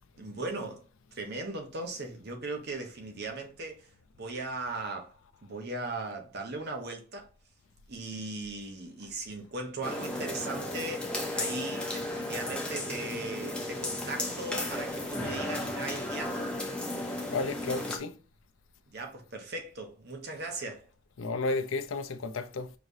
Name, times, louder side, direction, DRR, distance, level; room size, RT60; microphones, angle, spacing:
voice 1, 0.2-3.9 4.2-5.2 5.4-7.3 7.9-16.5 18.9-20.9, right 2 dB, 50° right, 0.9 m, -38 dB
sound 1, 9.8-18.0, left 1 dB, 5° left, 0.7 m, -34 dB
voice 2, 17.3-18.2 21.2-22.7, left 3 dB, 70° left, 0.5 m, -32 dB
4.9 x 3.2 x 2.7 m
head